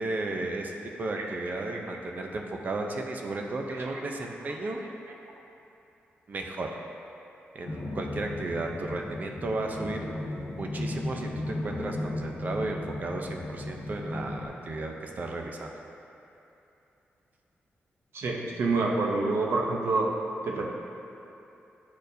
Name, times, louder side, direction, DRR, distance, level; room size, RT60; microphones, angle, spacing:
voice 1, 0.0-4.8 6.3-6.7 7.5-10.0 10.6-15.7, right 2 dB, 40° right, 2 dB, 0.6 m, -34 dB
sound 1, 7.6-14.4, left 1 dB, 70° left, 0.9 m, -36 dB
voice 2, 18.1-20.1 20.4-20.7, right 3 dB, 75° right, 0 dB, 0.8 m, -27 dB
10.0 x 4.4 x 2.7 m, 2.9 s
wide cardioid pair, 140°, 4 cm